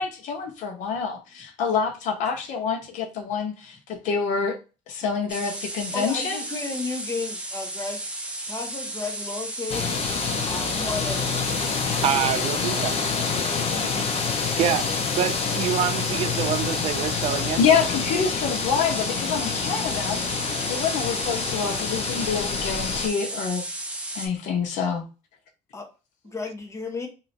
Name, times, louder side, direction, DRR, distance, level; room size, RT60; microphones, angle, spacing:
voice 1, 0.0-4.6 4.9-6.4 17.6-20.2 20.7-23.6 24.1-25.1, left 6 dB, 75° left, 1.0 m, -26 dB
sound 1, 5.3-24.3, right 1 dB, 10° right, 0.9 m, -34 dB
voice 2, 5.9-8.2 8.5-9.9 10.4-11.5 11.8-12.1 12.3-12.8 25.7-25.9 26.2-27.1, left 3 dB, 25° left, 1.0 m, -33 dB
sound 2, 9.7-23.1, left 6 dB, 50° left, 0.8 m, -27 dB
voice 3, 12.0-13.0 13.8-17.6, right 10 dB, 55° right, 0.4 m, -27 dB
3.1 x 2.8 x 2.8 m
cardioid pair, 115°, 13 cm